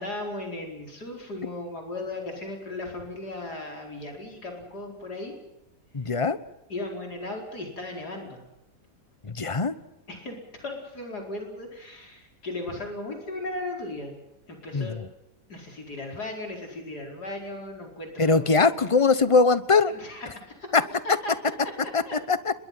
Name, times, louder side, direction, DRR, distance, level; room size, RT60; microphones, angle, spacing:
voice 1, 0.0-5.3 6.7-8.4 10.1-14.1 14.5-15.0 15.5-18.6 19.9-20.8 21.2-21.3 21.8-22.2, left 2 dB, 70° left, 1 dB, 5.3 m, -36 dB
voice 2, 5.9-6.4 9.2-9.7 14.7-15.0 18.2-19.9 20.7-20.8 21.9-22.0 22.3-22.5, left 4 dB, 25° left, 14 dB, 0.9 m, -21 dB
30.0 x 22.0 x 5.8 m, 0.88 s
omnidirectional pair, 1.8 m